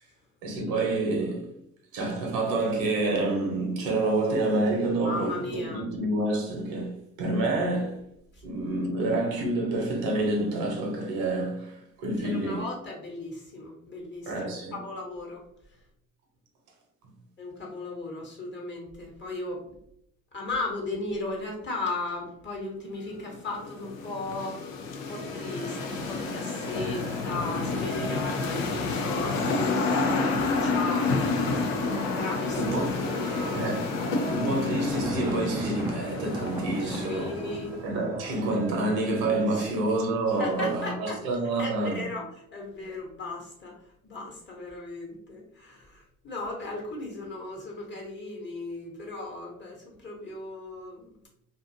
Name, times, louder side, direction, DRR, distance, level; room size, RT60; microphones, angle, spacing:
voice 1, 0.4-1.5 1.9-8.0 8.4-12.7 14.3-14.8 32.6-32.9 33.5-33.8 34.3-37.4 37.8-42.1, right 2 dB, 65° right, 0.8 m, -28 dB
voice 2, 5.0-5.8 12.2-14.3 14.7-15.4 17.4-19.6 20.3-24.6 25.1-31.8 32.1-32.6 33.0-33.7 36.8-37.8 39.5-39.7 40.4-41.2 41.6-43.8 44.0-51.2, left 2 dB, 30° left, 1.1 m, -36 dB
sound 1, 23.3-37.8, left 3 dB, 85° left, 0.5 m, -30 dB
sound 2, 25.1-35.7 36.0-39.4, right 2 dB, 85° right, 0.5 m, -42 dB
Thunder, 32.9-39.3, right 2 dB, 10° right, 0.3 m, -40 dB
2.5 x 2.4 x 2.6 m
hypercardioid pair, 60°, 39 cm